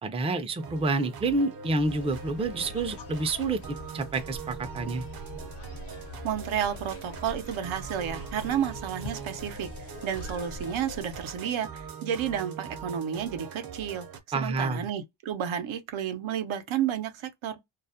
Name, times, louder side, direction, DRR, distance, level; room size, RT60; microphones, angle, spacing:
voice 1, 0.0-3.6 3.9-5.0 14.3-14.9, right 3 dB, 15° right, 0.3 m, -28 dB
sound 1, 0.6-14.2, right 6 dB, 50° right, 0.6 m, -42 dB
sound 2, 1.8-11.2, left 2 dB, 60° left, 0.7 m, -43 dB
voice 2, 6.2-9.7 10.0-14.1 14.3-17.5, right 9 dB, 90° right, 0.7 m, -31 dB
2.3 x 2.0 x 2.6 m
wide cardioid pair, 110°, 46 cm